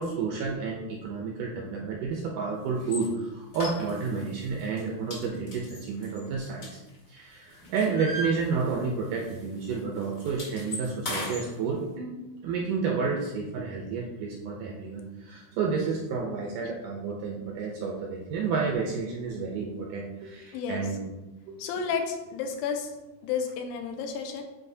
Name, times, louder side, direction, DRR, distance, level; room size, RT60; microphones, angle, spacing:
voice 1, 0.0-6.7 7.1-12.1 12.4-21.1 21.5-21.8, right 5 dB, 80° right, -1 dB, 1.9 m, -31 dB
sound 1, 2.8-3.1 3.5-4.3 4.6-4.8 5.1-7.2 7.5-9.0 9.2-9.4 9.7-11.4, left 1 dB, 55° left, 1.1 m, -37 dB
voice 2, 21.6-22.9 23.2-24.4, left 6 dB, 85° left, 4 dB, 2.4 m, -31 dB
8.9 x 4.0 x 2.7 m, 1.1 s
omnidirectional pair, 4.3 m